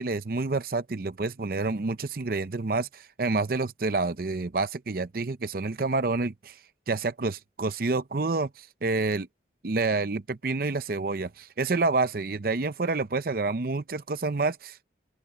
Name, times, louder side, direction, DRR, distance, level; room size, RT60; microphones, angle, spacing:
voice 1, 0.0-6.6 6.9-9.3 9.6-14.8, right 3 dB, 50° right, 0.6 m, -28 dB
open air
head